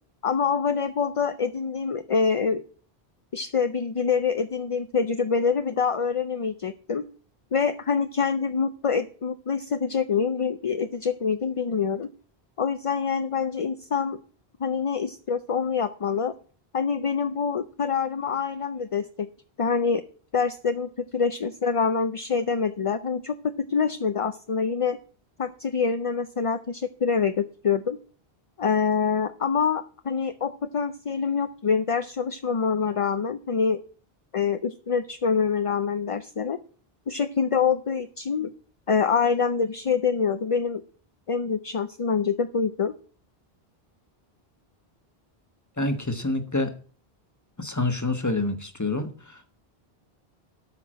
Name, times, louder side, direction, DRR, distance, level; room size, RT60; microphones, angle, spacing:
voice 1, 0.2-2.6 3.3-7.1 7.5-12.1 12.6-14.2 14.6-16.3 16.7-19.3 19.6-20.0 20.3-23.4 23.7-25.0 25.4-28.0 28.6-33.8 34.3-36.6 37.1-38.5 38.9-40.8 41.3-42.9, left 6 dB, 40° left, 10 dB, 0.5 m, -25 dB
voice 2, 45.8-46.7 47.6-49.5, left 2 dB, 15° left, 7 dB, 1.4 m, -27 dB
13.0 x 6.0 x 7.5 m, 0.42 s
omnidirectional pair, 1.0 m